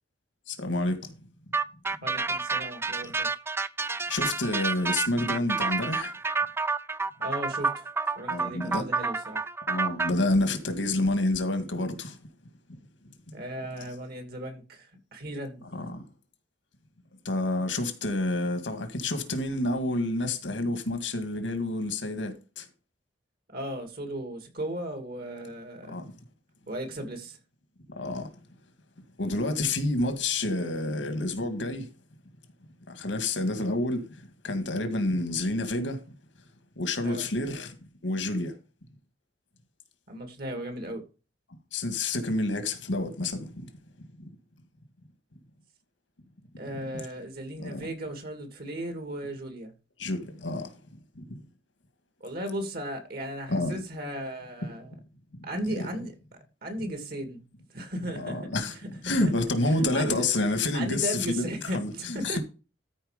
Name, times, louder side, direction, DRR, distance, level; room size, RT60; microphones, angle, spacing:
voice 1, 0.5-1.1 4.1-6.1 8.3-8.9 9.7-12.2 15.7-16.0 17.3-22.7 25.9-26.0 28.0-28.3 29.2-31.9 32.9-34.0 34.4-36.0 36.8-37.7 38.0-38.5 41.7-43.7 44.2-44.3 47.6-47.9 50.0-50.8 51.2-51.4 53.5-53.8 55.4-55.7 58.2-58.8 59.0-61.4 61.7-62.4, left 2 dB, 85° left, 1.9 m, -29 dB
sound 1, 1.5-10.1, right 4 dB, 15° right, 0.4 m, -29 dB
voice 2, 2.0-3.3 7.2-7.9 8.2-9.4 13.3-15.7 23.5-25.9 26.7-27.4 37.0-37.2 40.1-41.0 46.6-49.7 52.2-54.9 55.4-56.1 56.6-57.4 57.7-58.4 59.2-59.3 59.6-60.3 60.7-62.4, right 1 dB, 55° right, 2.7 m, -36 dB
13.5 x 4.7 x 5.1 m
head